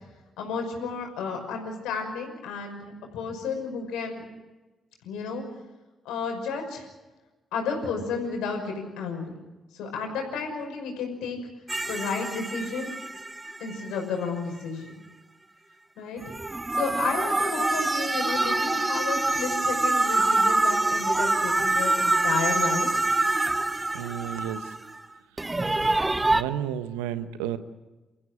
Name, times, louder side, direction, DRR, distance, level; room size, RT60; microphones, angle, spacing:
voice 1, 0.4-4.2 5.0-5.5 6.0-6.9 7.5-9.3 9.7-11.4 11.9-12.9 13.6-14.9 16.0-16.2 16.7-23.0, left 5 dB, 75° left, 3 dB, 5.7 m, -32 dB
sound 1, 11.7-14.0 16.2-25.0 25.4-26.4, right 2 dB, 20° right, 1.1 m, -25 dB
voice 2, 23.9-24.7 25.9-26.0 26.3-27.6, right 10 dB, 80° right, 12 dB, 1.1 m, -32 dB
29.5 x 15.0 x 8.7 m, 1.2 s
hypercardioid pair, 40°, 0 cm